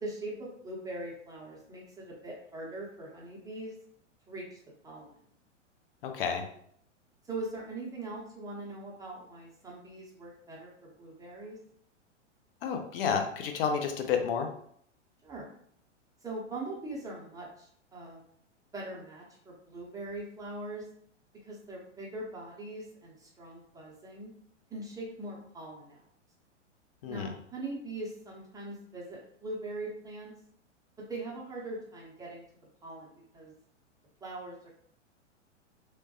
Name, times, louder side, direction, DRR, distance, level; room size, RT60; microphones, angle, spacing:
voice 1, 0.0-3.7 4.3-4.6 4.8-5.1 7.3-11.6 15.2-15.5 16.2-18.2 18.7-20.8 21.4-24.3 24.7-26.0 27.1-30.3 31.0-32.4 32.8-33.5 34.2-34.7, right 2 dB, 10° right, -4 dB, 0.7 m, -41 dB
voice 2, 6.0-6.4 12.6-14.5 27.0-27.3, left 6 dB, 50° left, 5 dB, 0.6 m, -30 dB
3.1 x 2.2 x 2.8 m, 0.64 s
figure-of-eight pair, 105°, 36 cm